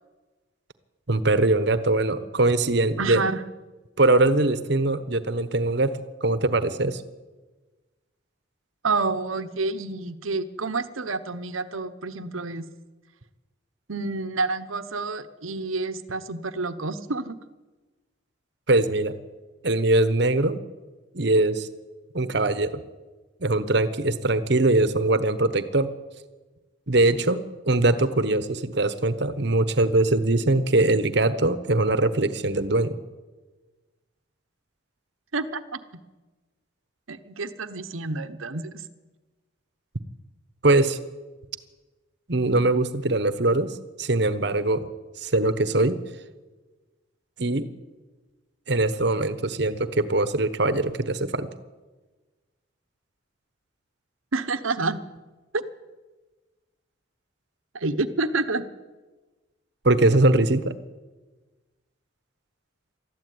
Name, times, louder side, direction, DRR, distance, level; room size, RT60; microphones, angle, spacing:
voice 1, 1.1-3.2 4.0-7.0 18.7-19.1 19.6-20.6 21.1-21.7 22.1-22.8 23.4-25.9 26.9-33.0 40.6-41.0 42.3-44.8 45.2-46.0 47.4-47.7 48.7-51.5 59.8-60.7, right 2 dB, 55° right, 13 dB, 1.2 m, -22 dB
voice 2, 3.0-3.4 8.8-12.6 13.9-17.4 35.3-35.8 37.1-38.8 54.3-55.0 55.5-55.6 57.7-58.7, right 3 dB, 85° right, 12 dB, 1.1 m, -28 dB
20.0 x 13.5 x 9.4 m, 1.2 s
head